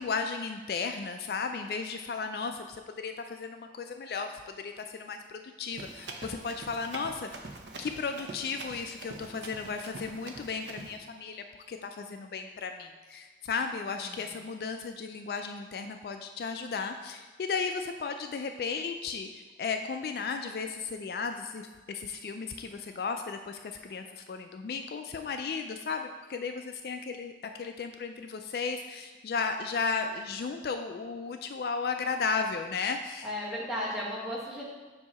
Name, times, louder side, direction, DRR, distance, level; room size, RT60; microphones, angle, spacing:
voice 1, 0.0-7.3 7.8-27.3 27.6-33.3, left 5 dB, 55° left, 6 dB, 0.3 m, -35 dB
Run, 5.7-11.0, right 2 dB, 85° right, 0.7 m, -44 dB
voice 2, 14.0-14.4 33.2-34.6, left 1 dB, 5° right, -7 dB, 1.3 m, -35 dB
7.5 x 2.7 x 5.4 m, 1.3 s
head